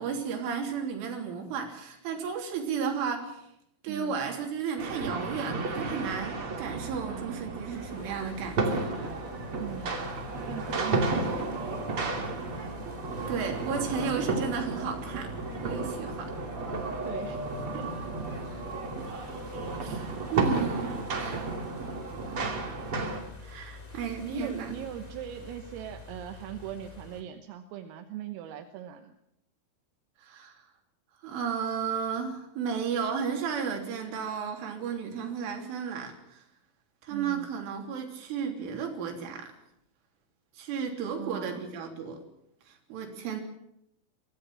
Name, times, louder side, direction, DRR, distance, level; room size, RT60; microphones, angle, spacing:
voice 1, 0.0-3.4 3.8-8.9 13.3-15.3 15.6-16.3 19.8-21.4 23.4-24.7 30.2-30.7 31.2-36.4 37.0-39.5 40.6-42.2 42.7-43.4, right 6 dB, 70° right, 3 dB, 5.7 m, -33 dB
voice 2, 3.9-4.2 7.0-7.6 9.6-10.1 10.4-11.5 17.0-17.4 17.7-18.0 24.2-29.1 37.1-37.5 41.2-41.6, right 10 dB, 85° right, 6 dB, 3.9 m, -40 dB
sound 1, 4.8-23.2, right 3 dB, 35° right, 2.7 m, -33 dB
sound 2, 7.7-27.2, left 3 dB, 15° left, 1.6 m, -47 dB
sound 3, 9.4-11.2 13.0-14.9 16.7-18.7, left 5 dB, 60° left, 5.4 m, -48 dB
24.0 x 16.5 x 7.5 m, 0.78 s
omnidirectional pair, 5.8 m